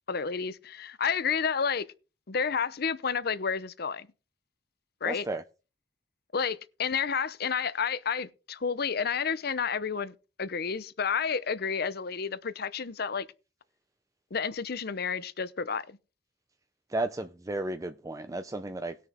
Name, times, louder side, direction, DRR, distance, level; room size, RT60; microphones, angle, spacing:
voice 1, 0.1-1.9 2.3-4.1 5.0-5.3 6.3-13.3 14.3-16.0, left 6 dB, 55° left, 0.7 m, -30 dB
voice 2, 5.1-5.4 16.9-19.0, right 2 dB, 20° right, 0.5 m, -33 dB
19.0 x 6.5 x 3.6 m
head